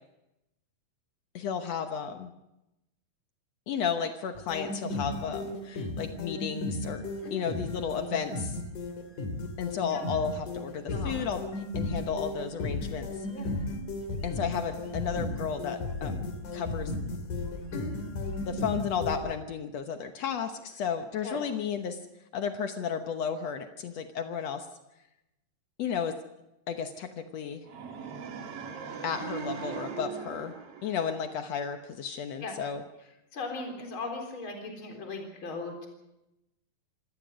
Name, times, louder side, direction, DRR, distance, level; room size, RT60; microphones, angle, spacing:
voice 1, 1.3-2.3 3.7-7.0 7.3-8.6 9.6-11.4 11.7-13.3 14.2-16.9 18.5-22.0 22.3-24.7 25.8-26.2 26.7-27.6 29.0-30.5 30.8-32.8, left 7 dB, 85° left, 7 dB, 1.4 m, -33 dB
sound 1, 4.4-19.2, left 2 dB, 55° left, 3.8 m, -35 dB
sound 2, 27.6-31.8, right 6 dB, 45° right, 2.4 m, -40 dB
voice 2, 33.3-35.9, left 3 dB, 30° left, 3 dB, 4.3 m, -38 dB
26.0 x 17.5 x 6.4 m, 0.90 s
omnidirectional pair, 4.6 m